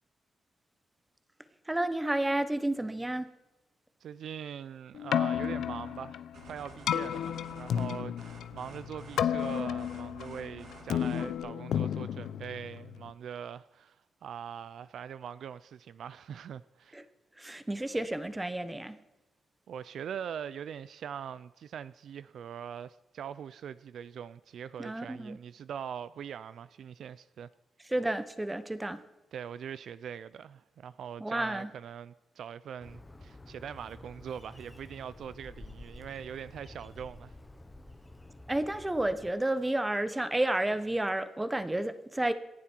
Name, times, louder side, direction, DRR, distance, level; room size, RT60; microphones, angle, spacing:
voice 1, 1.7-3.3 16.9-17.0 17.4-19.0 24.8-25.4 27.9-29.0 31.2-31.7 38.5-42.3, right 1 dB, 10° right, 1.0 m, -31 dB
voice 2, 4.0-17.0 19.7-27.5 29.3-37.3, right 8 dB, 60° right, 0.4 m, -42 dB
Keyboard (musical), 4.9-13.1, left 9 dB, 75° left, 0.7 m, -33 dB
sound 1, 6.3-11.4, right 2 dB, 80° right, 6.8 m, -51 dB
Bird, 32.8-39.3, left 2 dB, 10° left, 1.1 m, -50 dB
27.0 x 11.5 x 4.5 m
wide cardioid pair, 155°, 0 cm